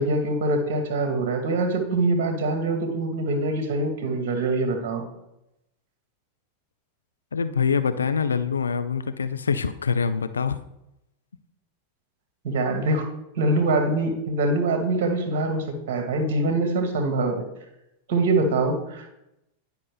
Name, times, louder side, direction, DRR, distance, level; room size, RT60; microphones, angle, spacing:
voice 1, 0.0-5.1 12.4-13.0 13.3-17.5 18.1-19.1, right 2 dB, 50° right, 5 dB, 1.4 m, -24 dB
voice 2, 7.3-10.6, left 6 dB, 70° left, 11 dB, 0.4 m, -25 dB
10.5 x 5.2 x 3.3 m, 0.86 s
figure-of-eight pair, 90°, 0 cm